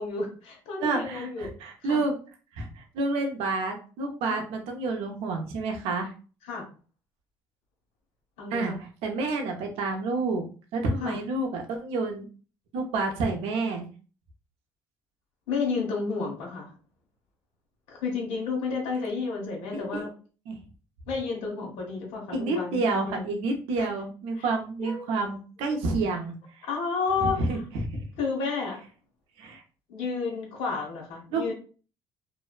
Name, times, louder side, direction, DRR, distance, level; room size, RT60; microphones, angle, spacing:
voice 1, 0.0-1.5 1.8-2.0 4.3-4.4 6.4-6.6 8.4-8.8 11.0-11.2 15.5-16.7 17.9-20.1 21.1-23.3 23.8-23.9 24.4-24.5 24.8-25.1 26.6-27.4 28.2-28.8 29.9-31.5, left 4 dB, 85° left, 0 dB, 1.2 m, -31 dB
voice 2, 0.8-2.1 2.6-6.1 8.5-8.7 9.0-10.4 10.7-12.3 12.7-13.9 19.7-20.0 20.5-20.6 22.3-26.7 27.2-28.1 29.4-29.6 31.3-31.4, right 3 dB, 80° right, 3 dB, 0.7 m, -29 dB
2.5 x 2.1 x 2.4 m, 0.36 s
cardioid pair, 90°, 10 cm